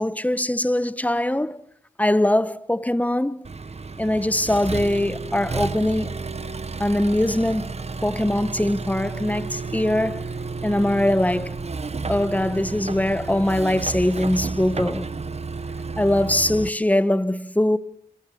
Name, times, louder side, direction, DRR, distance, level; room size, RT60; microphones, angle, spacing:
voice 1, 0.0-1.6 2.0-3.5 4.0-6.1 6.8-10.3 10.6-11.6 12.1-15.1 16.0-17.8, left 1 dB, 10° left, 1.4 m, -22 dB
Accelerating revving vroom, 3.4-16.7, right 4 dB, 45° right, 1.5 m, -32 dB
29.0 x 25.0 x 7.8 m
wide cardioid pair, 75°, 15 cm